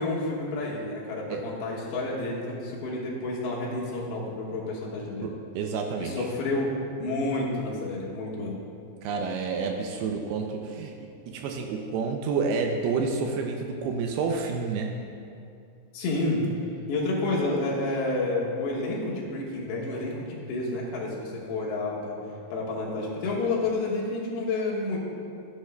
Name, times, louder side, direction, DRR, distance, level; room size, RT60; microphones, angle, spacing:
voice 1, 0.0-5.3 6.0-6.7 7.0-8.6 15.9-16.4 16.9-22.2 22.5-25.0, left 2 dB, 85° left, -4 dB, 3.6 m, -30 dB
voice 2, 5.2-6.3 9.0-10.9 11.3-15.0, right 4 dB, 80° right, 3 dB, 2.4 m, -29 dB
15.5 x 8.2 x 2.2 m, 2.5 s
omnidirectional pair, 4.9 m